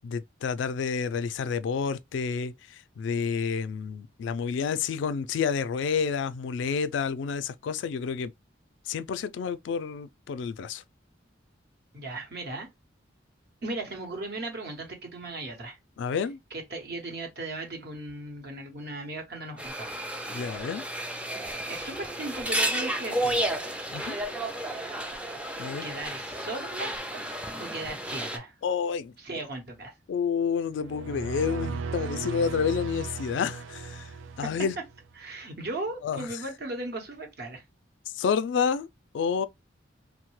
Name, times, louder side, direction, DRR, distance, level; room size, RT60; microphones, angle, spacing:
voice 1, 0.0-8.3 8.9-10.8 16.0-16.4 20.3-20.8 23.9-24.2 25.6-25.9 28.6-29.1 30.1-34.1 34.4-34.8 36.0-36.3 38.1-38.9 39.1-39.5, left 6 dB, 70° left, 0.3 m, -29 dB
voice 2, 11.9-12.7 13.6-15.8 16.5-19.9 21.7-23.6 25.8-27.2 27.6-28.5 29.2-29.9 34.4-34.7 35.2-37.6, right 2 dB, 55° right, 1.0 m, -37 dB
sound 1, 19.6-28.4, right 1 dB, 5° right, 0.4 m, -32 dB
sound 2, 30.7-35.1, right 4 dB, 85° right, 0.4 m, -36 dB
3.1 x 2.1 x 3.0 m
head